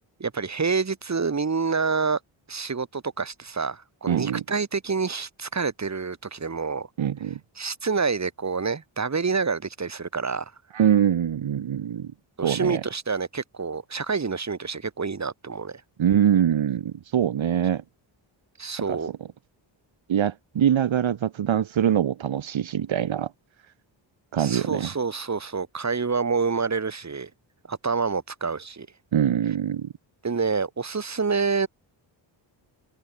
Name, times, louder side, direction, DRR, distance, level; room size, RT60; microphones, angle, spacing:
voice 1, 0.2-2.2 2.5-6.9 7.6-10.5 12.4-15.8 18.6-19.1 24.4-27.3 27.7-28.9 30.2-31.7, right 5 dB, 35° right, 4.2 m, -27 dB
voice 2, 4.1-4.4 7.0-7.4 10.7-12.1 12.4-12.8 16.0-17.8 18.9-19.0 20.1-23.3 24.3-24.9 29.1-29.9, right 9 dB, 75° right, 2.6 m, -23 dB
wide cardioid pair, 120°, 47 cm